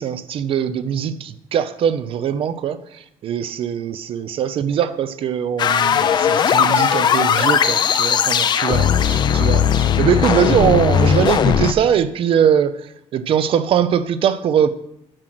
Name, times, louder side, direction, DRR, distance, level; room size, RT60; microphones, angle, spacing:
voice 1, 0.0-14.7, right 8 dB, 50° right, 13 dB, 0.5 m, -21 dB
sound 1, 5.6-11.7, left 8 dB, 35° left, 0.4 m, -17 dB
8.8 x 6.2 x 6.0 m, 0.77 s
cardioid pair, 165°, 12 cm